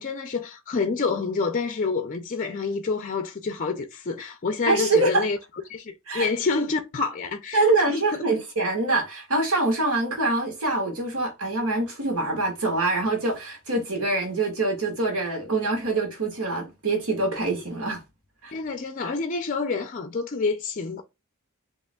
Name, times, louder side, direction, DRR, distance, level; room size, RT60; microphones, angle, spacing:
voice 1, 0.0-5.4 5.7-8.2 18.5-21.0, left 4 dB, 35° left, 0.5 m, -28 dB
voice 2, 4.7-5.2 6.1-6.3 7.5-18.0 18.4-18.6, right 2 dB, 75° right, 1.7 m, -24 dB
7.8 x 3.0 x 2.3 m
head